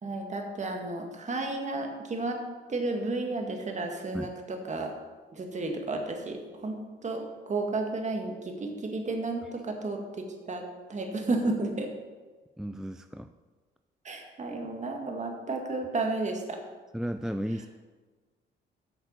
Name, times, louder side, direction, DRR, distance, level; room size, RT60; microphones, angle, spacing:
voice 1, 0.0-2.4 2.7-4.9 5.3-10.6 10.9-11.9 14.0-16.6, right 2 dB, 35° right, 3 dB, 1.8 m, -32 dB
voice 2, 12.6-13.3 16.9-17.7, equal, ahead, 9 dB, 0.3 m, -34 dB
8.0 x 6.7 x 6.9 m, 1.4 s
cardioid pair, 90°, 20 cm